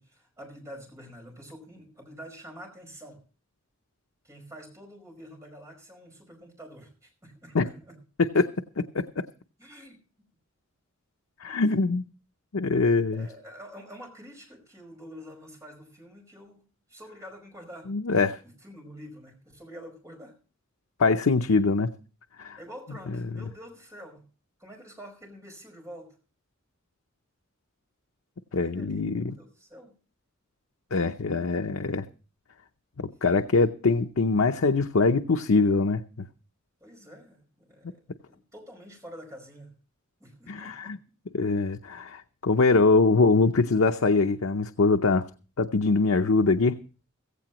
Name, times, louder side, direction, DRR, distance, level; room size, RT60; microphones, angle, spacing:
voice 1, 0.0-3.2 4.2-8.0 9.6-10.0 11.4-11.7 12.9-16.6 16.9-17.9 18.4-20.3 21.2-21.3 22.6-24.3 24.6-26.1 28.6-29.9 36.8-39.7 40.2-40.9, equal, 15° right, 2 dB, 5.2 m, -47 dB
voice 2, 8.8-9.2 11.4-12.0 12.5-13.3 17.9-18.4 21.0-21.9 22.4-22.6 28.5-29.4 30.9-32.0 33.2-36.3 40.5-41.0 41.3-45.3 45.6-46.8, left 3 dB, 80° left, 6 dB, 0.7 m, -23 dB
16.5 x 15.5 x 3.0 m, 0.36 s
head